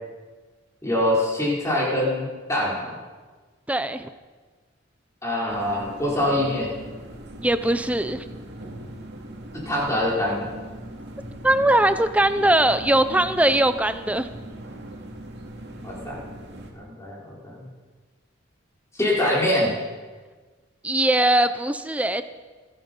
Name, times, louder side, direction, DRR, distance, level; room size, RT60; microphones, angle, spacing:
voice 1, 0.8-3.0 5.2-6.7 9.5-10.5 15.8-16.2 16.7-17.7 18.9-19.8, left 1 dB, 15° left, -5 dB, 4.9 m, -24 dB
voice 2, 3.7-4.1 7.4-8.2 11.4-14.3 20.8-22.2, right 1 dB, 5° right, 11 dB, 0.6 m, -20 dB
sound 1, 5.5-16.7, right 1 dB, 60° right, 2.6 m, -40 dB
26.0 x 9.7 x 5.6 m, 1.4 s
head